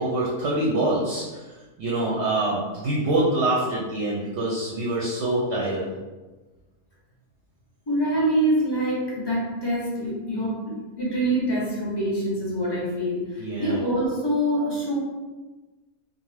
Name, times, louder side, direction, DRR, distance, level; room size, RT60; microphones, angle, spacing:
voice 1, 0.0-1.4 1.8-5.8 13.4-13.8, right 2 dB, 65° right, -4 dB, 0.7 m, -25 dB
voice 2, 7.9-15.0, right 1 dB, 30° left, -6 dB, 0.4 m, -25 dB
2.6 x 2.1 x 3.1 m, 1.2 s
omnidirectional pair, 1.5 m